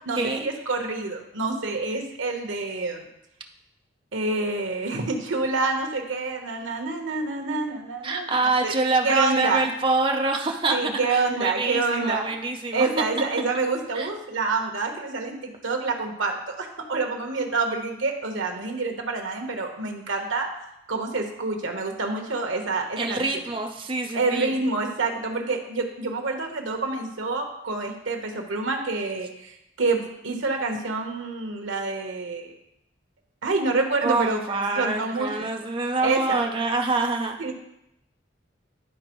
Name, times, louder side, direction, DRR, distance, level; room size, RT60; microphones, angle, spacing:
voice 1, 0.1-3.1 4.1-8.4 8.6-8.7 9.0-9.8 10.7-12.3 12.7-20.5 20.9-23.3 24.1-32.5 33.4-34.4 34.7-35.5 36.0-36.4 37.4-37.5, right 3 dB, 85° right, 3 dB, 1.1 m, -27 dB
voice 2, 8.0-12.9 13.9-14.1 23.0-24.5 34.0-37.4, right 3 dB, 25° right, 2 dB, 0.6 m, -26 dB
11.5 x 4.2 x 3.0 m, 0.82 s
head